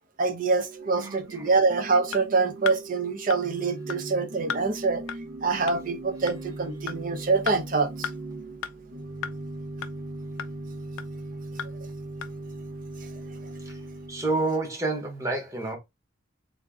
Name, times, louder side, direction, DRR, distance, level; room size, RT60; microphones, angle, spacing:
voice 1, 0.2-5.0 5.4-8.1, right 4 dB, 40° right, 0.6 m, -25 dB
Organ / Church bell, 0.6-14.7, right 2 dB, 85° right, 0.8 m, -39 dB
voice 2, 1.0-1.5 13.6-13.8 14.1-15.8, right 2 dB, 15° right, 1.0 m, -29 dB
sound 1, 2.1-2.2 2.7-2.8 3.3-3.4 3.9-4.0 4.5-4.6 5.1-5.2 5.7-5.8 6.3-6.4 6.9-7.0 7.5-7.6 8.0-8.1 8.6-8.7 9.2-9.3 9.8-9.9 10.4-10.5 11.0-11.1 11.6-11.7 12.2-12.3, left 8 dB, 70° left, 0.4 m, -33 dB
3.6 x 2.6 x 3.5 m
head